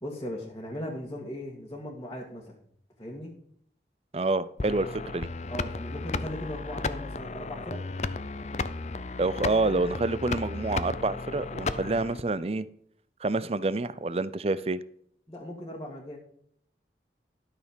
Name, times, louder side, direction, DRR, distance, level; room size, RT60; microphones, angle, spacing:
voice 1, 0.0-2.6 3.0-3.3 5.5-7.8 15.3-16.2, left 1 dB, 20° left, -4 dB, 1.8 m, -38 dB
voice 2, 4.1-5.3 9.2-12.7 13.2-14.8, right 3 dB, 35° right, 17 dB, 0.5 m, -28 dB
sound 1, 4.6-12.2, left 3 dB, 40° left, 0.5 m, -34 dB
12.5 x 6.5 x 5.2 m, 0.66 s
head